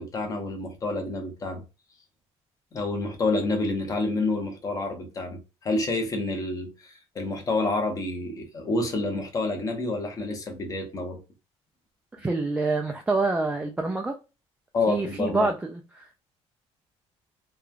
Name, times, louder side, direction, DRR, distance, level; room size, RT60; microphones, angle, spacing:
voice 1, 0.0-1.6 2.7-11.2 14.7-15.5, left 2 dB, 30° left, 0.9 m, -28 dB
voice 2, 12.2-14.2 14.9-16.2, right 3 dB, 10° right, 0.3 m, -27 dB
3.1 x 2.3 x 2.4 m
cardioid pair, 145°, 11 cm